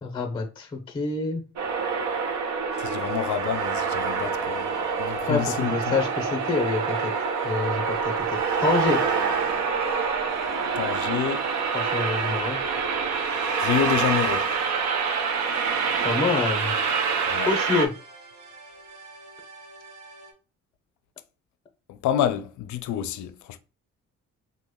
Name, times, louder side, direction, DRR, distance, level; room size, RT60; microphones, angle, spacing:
voice 1, 0.0-1.4 5.3-7.1 7.4-8.0 8.3-9.0 11.7-12.6 16.0-16.7 17.5-17.9, left 4 dB, 20° left, 0.6 m, -26 dB
sound 1, 1.6-17.9, right 5 dB, 70° right, 0.6 m, -26 dB
sound 2, 2.7-20.3, right 3 dB, 85° right, 1.1 m, -47 dB
voice 2, 2.8-6.0 10.8-11.5 13.6-14.5 17.3-17.5 21.9-23.6, left 10 dB, 70° left, 0.5 m, -28 dB
2.9 x 2.2 x 3.5 m
cardioid pair, 90°, 30 cm